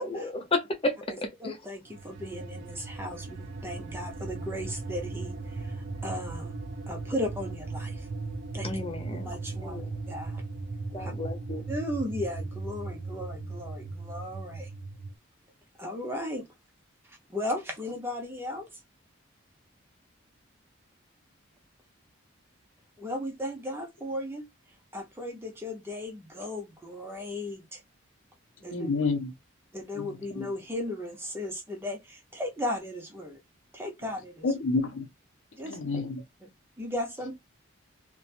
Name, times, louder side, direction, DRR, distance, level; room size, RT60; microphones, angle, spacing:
voice 1, 0.0-1.6 8.6-9.3 9.6-9.9 10.9-11.6, left 2 dB, 25° left, 0.6 m, -32 dB
voice 2, 1.4-6.5 6.9-8.1 8.5-8.8 9.1-9.8 10.1-10.4 11.0-11.1 11.7-14.7 15.8-16.5 17.0-18.8 23.0-24.5 24.9-27.8 28.6-28.9 29.7-33.4 33.7-34.5 35.5-36.0 36.8-37.3, left 1 dB, 10° right, 0.7 m, -36 dB
sound 1, 1.9-15.1, right 3 dB, 55° right, 0.4 m, -37 dB
voice 3, 28.7-29.3 29.9-30.5 34.4-35.0 35.6-36.2, left 3 dB, 70° left, 0.7 m, -29 dB
2.9 x 2.2 x 2.4 m
head